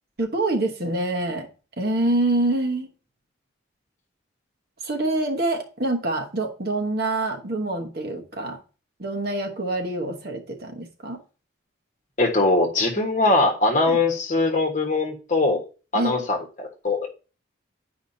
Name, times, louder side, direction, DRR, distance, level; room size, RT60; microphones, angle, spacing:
voice 1, 0.2-1.5 1.8-2.9 4.8-8.6 9.0-11.2 13.9-14.0 15.9-16.3, right 2 dB, 50° right, 2 dB, 1.1 m, -26 dB
voice 2, 12.2-15.6 15.9-17.1, left 2 dB, 40° left, 2 dB, 1.4 m, -21 dB
10.5 x 5.0 x 2.7 m, 0.35 s
head